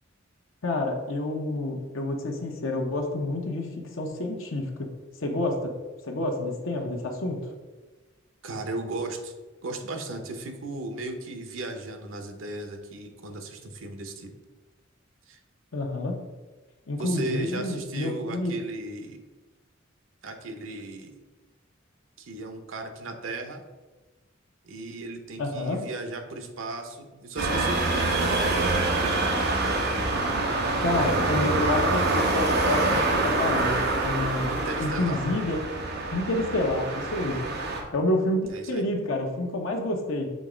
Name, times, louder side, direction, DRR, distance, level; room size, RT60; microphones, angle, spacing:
voice 1, 0.6-3.7 3.9-4.9 5.2-5.7 6.0-7.5 15.7-16.2 16.9-18.5 25.4-25.8 30.8-34.5 34.8-35.6 36.1-37.4 37.9-40.3, left 2 dB, 85° left, 1 dB, 0.9 m, -28 dB
voice 2, 8.4-9.3 9.6-14.3 15.3-15.4 17.0-19.2 20.2-21.1 22.2-23.6 24.6-29.2 34.5-35.2 38.5-38.9, right 2 dB, 85° right, 6 dB, 0.9 m, -36 dB
sound 1, 27.4-37.8, right 2 dB, 55° right, 1.0 m, -26 dB
6.4 x 3.1 x 5.0 m, 1.2 s
head